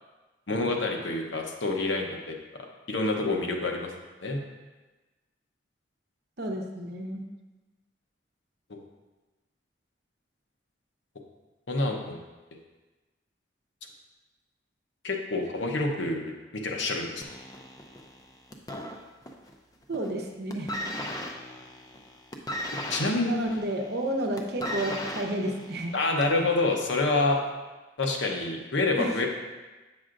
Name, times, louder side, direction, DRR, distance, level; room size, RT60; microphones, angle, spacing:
voice 1, 0.5-2.6 2.9-3.9 4.2-4.4 8.7-8.8 11.7-12.2 15.0-16.3 16.6-17.1 22.9-23.3 25.9-27.4 28.0-29.3, left 2 dB, 70° left, 1 dB, 0.9 m, -27 dB
voice 2, 6.4-7.3 19.9-21.0 23.2-25.9 29.0-29.3, right 1 dB, 55° right, 2 dB, 0.8 m, -31 dB
sound 1, 17.2-19.5 19.8-20.2 20.5-26.5 27.3-27.4, equal, 20° left, 0.5 m, -37 dB
8.4 x 6.2 x 2.5 m, 1.2 s
head